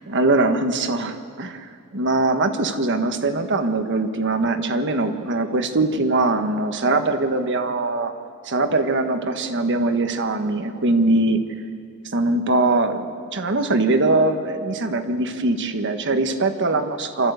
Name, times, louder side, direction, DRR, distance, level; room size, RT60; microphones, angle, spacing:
voice 1, 0.1-1.7 1.9-8.1 8.4-11.4 12.1-17.3, right 2 dB, 55° right, 7 dB, 1.4 m, -22 dB
27.0 x 13.5 x 8.1 m, 2.2 s
head